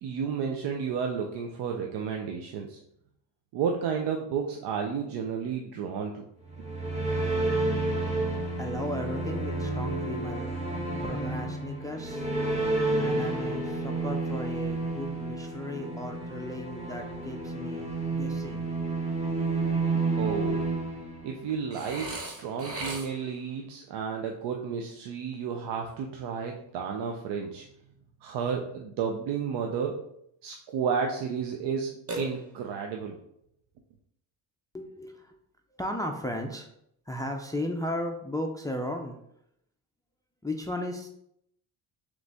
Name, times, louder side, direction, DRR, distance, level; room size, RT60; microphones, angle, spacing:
voice 1, 0.0-2.8 3.5-6.2 19.9-20.6 21.2-27.6 28.2-30.0 30.4-33.2, right 6 dB, 80° right, 2 dB, 0.6 m, -32 dB
sound 1, 6.4-21.6, right 2 dB, 15° right, 1.2 m, -30 dB
voice 2, 8.6-10.5 11.0-12.3 13.0-18.7 34.7-35.3 35.8-36.7 37.1-39.2 40.4-41.1, left 1 dB, 10° left, 3 dB, 0.3 m, -35 dB
Burping eructation, 21.7-23.4 32.1-32.9, right 1 dB, 35° right, 0.9 m, -37 dB
3.8 x 3.1 x 3.4 m, 0.74 s
cardioid pair, 105°, 41 cm